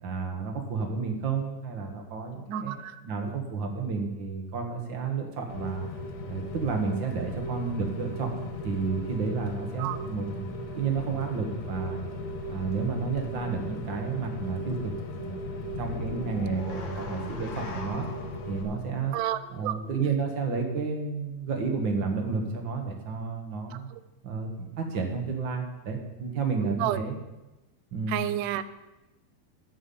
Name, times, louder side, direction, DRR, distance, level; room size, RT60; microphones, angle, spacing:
voice 1, 0.0-2.7 3.0-5.9 6.3-10.5 10.7-12.1 12.5-18.1 18.5-19.2 19.5-23.9 24.2-27.2 27.9-28.2, right 5 dB, 50° right, 3 dB, 1.4 m, -31 dB
voice 2, 2.5-2.9 9.8-10.0 19.1-19.8 23.9-24.0 26.6-27.0 28.1-28.6, right 13 dB, 90° right, 13 dB, 2.5 m, -30 dB
Rain, 5.5-18.6, left 1 dB, 80° left, 1.3 m, -37 dB
sound 1, 15.7-20.0, left 2 dB, 55° left, 2.1 m, -42 dB
12.0 x 5.5 x 8.4 m, 1.0 s
omnidirectional pair, 4.1 m